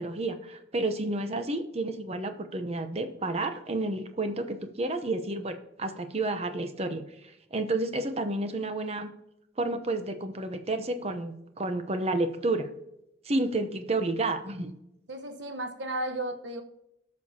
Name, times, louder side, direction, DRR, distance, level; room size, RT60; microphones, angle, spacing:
voice 1, 0.0-7.1 7.5-9.1 9.6-12.7 13.2-14.7, right 2 dB, 35° right, 8 dB, 0.8 m, -30 dB
voice 2, 15.1-16.6, right 1 dB, 80° right, 5 dB, 1.1 m, -34 dB
18.5 x 6.4 x 2.9 m, 0.84 s
head